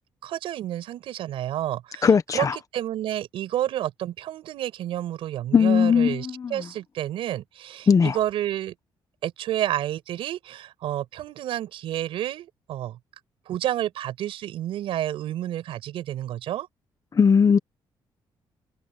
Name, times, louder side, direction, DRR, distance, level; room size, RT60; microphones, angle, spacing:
voice 1, 0.2-2.1 2.3-2.5 2.7-8.7 9.2-13.0 13.5-16.7, right 12 dB, 85° right, 5.7 m, -30 dB
voice 2, 2.0-2.6 5.5-6.7 7.9-8.2 17.1-17.6, left 6 dB, 40° left, 1.4 m, -19 dB
cardioid pair, 105°, 9 cm